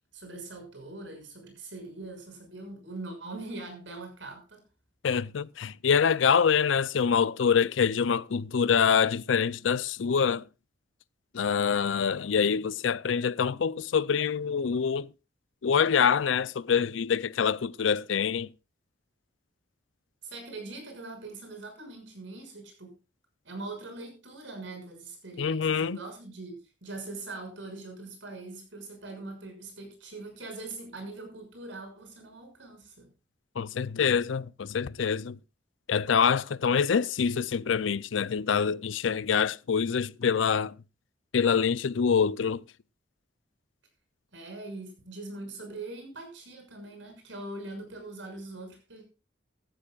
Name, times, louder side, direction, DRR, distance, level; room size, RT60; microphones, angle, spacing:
voice 1, 0.1-4.6 20.2-22.9 23.4-33.1 44.3-49.0, right 2 dB, 80° right, 6.4 m, -42 dB
voice 2, 5.0-10.4 11.3-15.1 15.6-18.5 25.4-26.0 33.6-35.4 35.9-40.7 41.3-42.6, left 6 dB, 85° left, 0.5 m, -25 dB
16.5 x 14.0 x 2.4 m
head